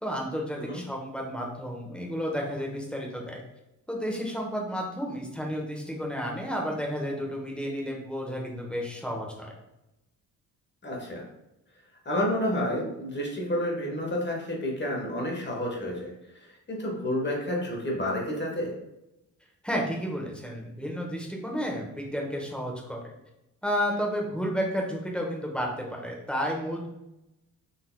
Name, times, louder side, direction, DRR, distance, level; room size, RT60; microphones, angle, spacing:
voice 1, 0.0-3.4 3.9-9.5 19.6-23.0 23.6-26.9, equal, 5° left, -1 dB, 0.9 m, -32 dB
voice 2, 10.8-11.2 12.0-18.7, left 1 dB, 30° left, -2 dB, 1.1 m, -30 dB
4.1 x 2.7 x 2.2 m, 0.89 s
supercardioid pair, 60°, 37 cm